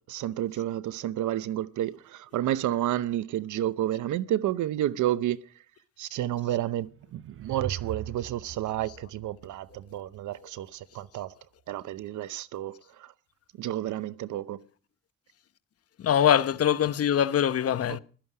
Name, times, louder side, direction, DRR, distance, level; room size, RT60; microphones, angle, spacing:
voice 1, 0.1-5.5 6.0-11.3 11.7-13.1 13.6-14.6 17.9-18.0, right 12 dB, 75° right, 0.8 m, -30 dB
sound 1, 6.8-10.2, right 10 dB, 45° right, 0.6 m, -40 dB
voice 2, 16.0-18.0, left 9 dB, 50° left, 0.9 m, -23 dB
16.0 x 13.0 x 4.8 m
cardioid pair, 90°, 30 cm